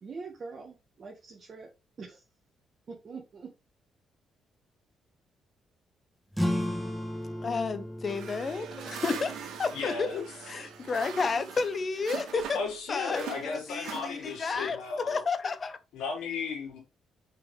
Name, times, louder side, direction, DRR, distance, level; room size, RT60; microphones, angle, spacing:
voice 1, 0.0-1.7 2.0-2.2 2.9-3.5, right 4 dB, 45° right, 1.8 m, -43 dB
sound 1, 6.3-11.4, left 1 dB, ahead, 2.2 m, -36 dB
voice 2, 7.4-12.6 12.9-15.8, left 4 dB, 40° left, 0.9 m, -32 dB
sound 2, 8.1-12.8 13.1-14.6, right 8 dB, 85° right, 1.9 m, -42 dB
voice 3, 9.7-10.3 12.5-15.2 15.9-16.8, left 4 dB, 90° left, 3.8 m, -35 dB
6.5 x 5.2 x 3.4 m
cardioid pair, 90°, 0 cm